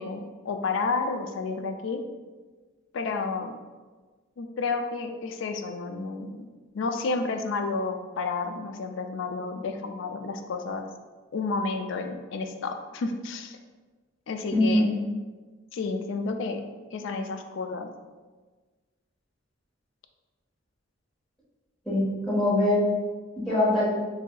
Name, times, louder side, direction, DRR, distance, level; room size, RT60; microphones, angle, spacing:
voice 1, 0.0-2.0 2.9-3.5 4.4-6.3 6.7-10.8 11.3-13.6 14.3-14.9 15.7-16.6 16.9-17.9, left 4 dB, 70° left, 6 dB, 0.3 m, -31 dB
voice 2, 14.5-14.9 21.8-22.8 23.5-23.8, left 1 dB, 5° left, -11 dB, 1.3 m, -23 dB
4.7 x 2.6 x 2.3 m, 1.3 s
head